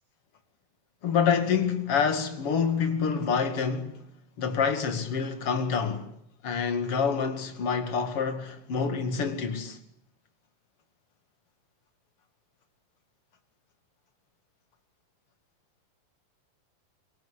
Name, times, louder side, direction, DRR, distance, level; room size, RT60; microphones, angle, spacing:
voice 1, 1.0-4.0 4.4-6.1 6.4-9.8, left 6 dB, 45° left, 2.8 m, -27 dB
26.5 x 23.0 x 8.4 m
omnidirectional pair, 4.2 m